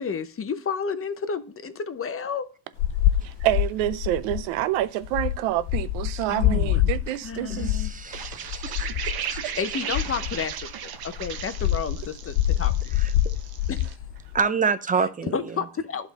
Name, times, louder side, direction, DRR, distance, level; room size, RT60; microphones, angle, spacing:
voice 1, 0.0-2.5 6.3-6.8 7.2-8.2 9.6-13.0 13.7-13.8 14.9-16.1, left 6 dB, 30° left, 0.8 m, -31 dB
sound 1, 2.8-10.7 11.0-14.4, left 13 dB, 65° left, 0.5 m, -26 dB
voice 2, 3.2-7.9, right 14 dB, 85° right, 0.6 m, -27 dB
voice 3, 7.5-8.9 9.3-9.4 14.3-15.4, right 5 dB, 20° right, 0.6 m, -27 dB
sound 2, 8.1-13.9, right 8 dB, 55° right, 0.9 m, -36 dB
11.0 x 3.7 x 4.1 m
supercardioid pair, 80°, 44 cm